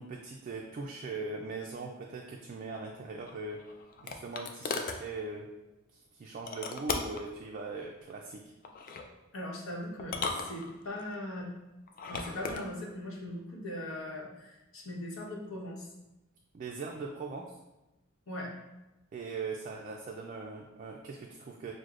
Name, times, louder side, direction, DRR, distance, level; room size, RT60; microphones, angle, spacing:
voice 1, 0.0-3.6 4.0-5.5 5.9-8.4 16.5-17.5 19.1-21.7, right 3 dB, 40° right, 0 dB, 0.3 m, -40 dB
sound 1, 3.3-5.0 6.5-7.3 8.6-9.1 10.0-11.0 11.9-12.6, left 4 dB, 45° left, 0.4 m, -37 dB
voice 2, 9.3-11.5 12.1-15.9 18.3-18.5, left 1 dB, 75° left, -4 dB, 1.0 m, -40 dB
6.2 x 2.1 x 2.4 m, 1.0 s
head